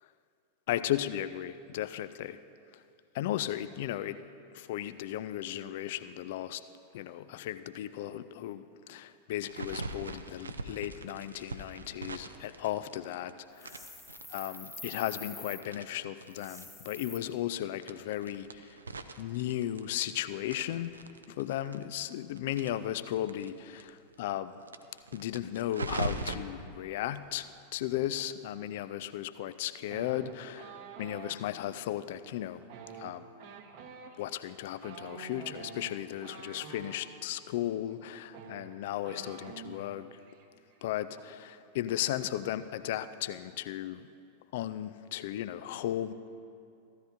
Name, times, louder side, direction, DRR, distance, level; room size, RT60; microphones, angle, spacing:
voice 1, 0.7-2.4 2.7-2.8 3.1-4.2 4.5-6.6 6.9-13.9 14.3-18.8 19.2-20.9 21.3-24.6 25.1-32.7 33.0-33.3 34.2-40.2 40.8-44.1 44.5-46.1, left 12 dB, 55° left, 13 dB, 0.3 m, -35 dB
sound 1, 9.4-13.3 13.6-16.6 16.9-17.0 17.3-17.4 17.8-20.2 20.5-23.5 23.8-23.9 24.1-24.2 24.6-26.3, right 3 dB, 75° right, 0.5 m, -40 dB
sound 2, 13.6-15.6 16.3-17.2, left 2 dB, 5° left, 1.3 m, -46 dB
sound 3, 29.9-31.4 32.6-37.0 37.9-38.0 38.3-39.9 40.2-40.5 40.7-41.2, right 5 dB, 45° right, 0.9 m, -47 dB
15.0 x 13.0 x 2.7 m, 2.5 s
figure-of-eight pair, 90°, 0 cm